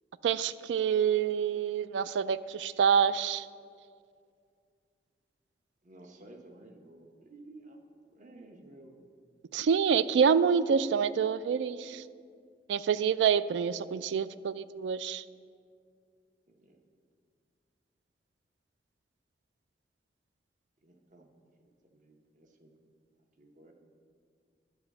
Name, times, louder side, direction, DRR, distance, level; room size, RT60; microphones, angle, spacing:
voice 1, 0.2-3.5 9.5-12.0 12.7-15.2, right 7 dB, 80° right, 16 dB, 0.3 m, -27 dB
voice 2, 5.8-7.8 8.1-9.1 16.6-16.8 20.8-21.3 21.6-22.7 23.4-23.7, right 2 dB, 45° right, 4 dB, 0.9 m, -53 dB
9.6 x 4.8 x 7.0 m, 2.2 s
head